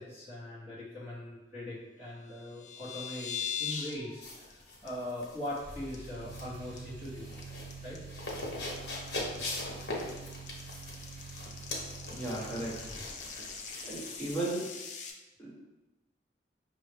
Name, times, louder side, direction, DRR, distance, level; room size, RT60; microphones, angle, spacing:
voice 1, 0.0-7.3 7.8-8.0 9.1-9.5, left 1 dB, 10° right, -11 dB, 0.8 m, -41 dB
sound 1, 2.3-3.9 4.3-4.5 4.9-5.0 5.3-5.6 5.9-6.4 6.8-15.1, left 7 dB, 40° left, 0.5 m, -41 dB
sound 2, 4.2-14.5, left 2 dB, 70° left, 0.9 m, -42 dB
sound 3, 5.5-13.5, right 4 dB, 50° right, 0.6 m, -47 dB
voice 2, 12.1-12.7 13.8-14.7 15.4-15.5, right 2 dB, 5° left, -8 dB, 1.1 m, -35 dB
5.3 x 2.1 x 3.3 m, 1.1 s
head